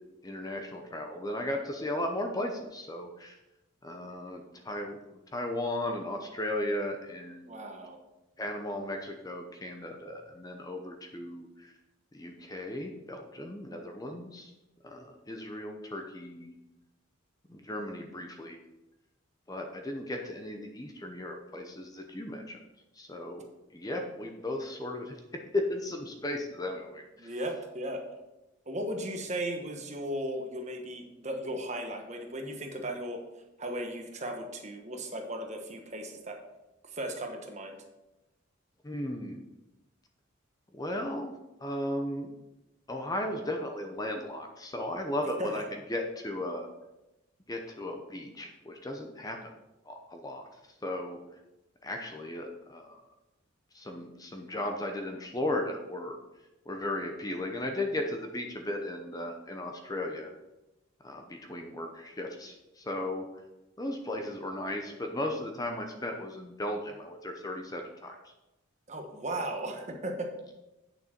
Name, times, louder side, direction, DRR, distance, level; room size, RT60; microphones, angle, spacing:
voice 1, 0.2-3.4 3.8-5.0 5.3-7.7 8.4-11.7 12.1-14.5 14.8-16.5 17.5-18.6 19.5-22.6 23.0-23.5 23.7-25.2 25.5-27.3 38.8-39.5 40.7-41.3 41.6-42.3 42.9-45.6 45.9-46.7 47.5-49.4 49.9-50.5 50.8-51.2 51.8-53.0 53.7-56.2 56.7-60.3 61.0-63.2 63.8-68.2, left 1 dB, 20° left, 3 dB, 0.7 m, -36 dB
voice 2, 7.5-8.0 27.2-28.0 28.7-33.2 33.6-36.4 36.9-37.7 45.4-45.6 68.9-70.3, right 1 dB, 35° right, 3 dB, 1.2 m, -36 dB
8.7 x 6.7 x 4.4 m, 0.97 s
head